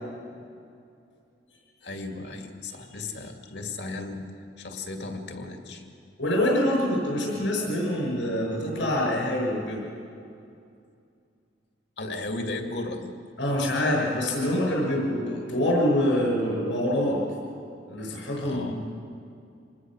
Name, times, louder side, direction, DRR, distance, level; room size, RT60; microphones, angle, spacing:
voice 1, 1.8-4.2 4.6-5.8 12.0-13.1 18.4-18.8, left 2 dB, 60° left, 4 dB, 2.4 m, -35 dB
voice 2, 6.2-9.8 13.4-17.3 17.9-18.8, left 1 dB, 80° left, -2 dB, 6.2 m, -25 dB
26.5 x 20.5 x 6.4 m, 2.5 s
head